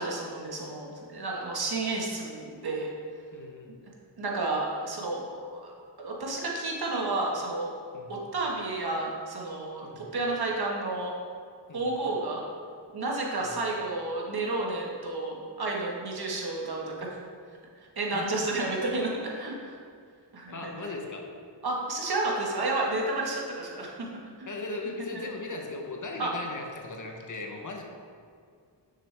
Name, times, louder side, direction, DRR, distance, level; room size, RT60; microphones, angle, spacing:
voice 1, 0.0-2.9 4.2-5.7 6.0-7.8 8.1-11.1 11.7-12.4 12.9-17.1 18.0-19.8 20.3-20.8 21.6-24.5 25.1-25.2 26.2-26.3, right 2 dB, 60° right, -2 dB, 1.5 m, -31 dB
voice 2, 3.3-3.8 7.9-8.1 9.8-10.1 11.7-11.9 13.4-13.5 18.1-18.6 20.5-21.4 24.5-27.8, left 3 dB, 45° left, 2 dB, 0.9 m, -38 dB
9.7 x 6.5 x 3.4 m, 2.2 s
wide cardioid pair, 150°, 43 cm